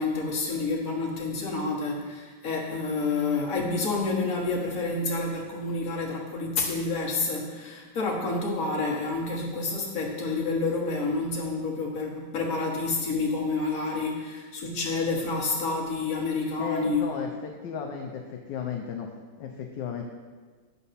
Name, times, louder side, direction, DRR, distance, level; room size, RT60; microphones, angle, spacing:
voice 1, 0.0-17.3, left 3 dB, 40° left, -2 dB, 1.7 m, -29 dB
voice 2, 16.6-19.1 19.4-20.0, left 6 dB, 65° left, 2 dB, 1.2 m, -34 dB
9.1 x 7.0 x 4.2 m, 1.4 s
omnidirectional pair, 2.4 m